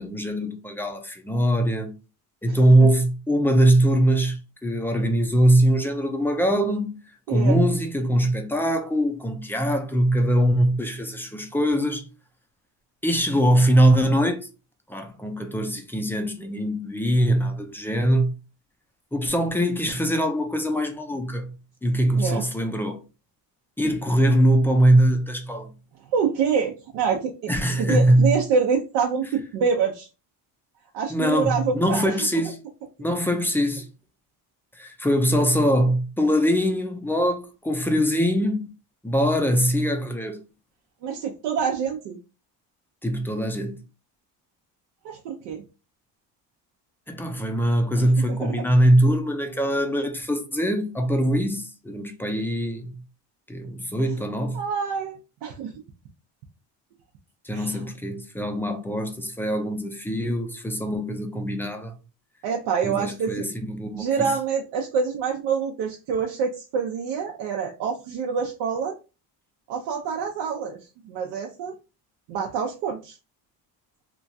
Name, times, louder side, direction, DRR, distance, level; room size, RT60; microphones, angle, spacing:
voice 1, 0.0-1.9 2.4-7.0 7.3-12.1 13.0-14.5 14.9-18.3 19.1-21.5 21.8-23.0 23.8-25.7 27.5-28.4 31.1-32.6 33.0-33.9 34.7-38.7 39.0-40.4 43.0-43.8 47.1-52.9 53.5-54.6 57.4-61.9 62.8-64.3, right 1 dB, 5° left, 0.3 m, -22 dB
voice 2, 7.3-7.6 22.2-22.4 26.1-27.5 27.8-30.1 30.9-32.2 41.0-42.2 45.0-45.6 48.4-48.6 54.5-55.7 57.5-57.8 62.4-63.5 63.9-69.0 69.7-71.7 72.3-73.2, right 6 dB, 80° right, 0.6 m, -26 dB
3.0 x 2.3 x 2.5 m
cardioid pair, 120°, 43 cm